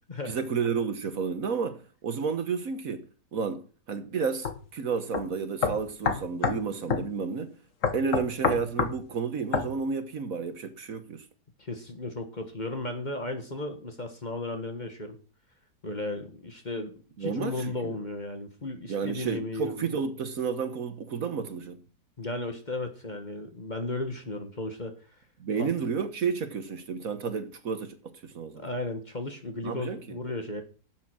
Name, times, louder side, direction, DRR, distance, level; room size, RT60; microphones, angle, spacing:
voice 1, 0.3-7.6 7.9-11.2 17.2-18.0 18.9-21.8 25.4-28.0 28.2-28.6 29.6-30.2, right 5 dB, 60° right, 1.5 m, -31 dB
sound 1, 4.4-4.6 5.1-5.2 5.6-6.6 6.9-7.1 7.8-9.0 9.5-9.7, left 6 dB, 50° left, 1.5 m, -27 dB
voice 2, 11.6-15.2 15.8-19.8 22.2-25.0 25.6-25.7 28.5-30.6, left 2 dB, 30° left, 1.5 m, -35 dB
12.0 x 7.8 x 6.1 m
omnidirectional pair, 1.8 m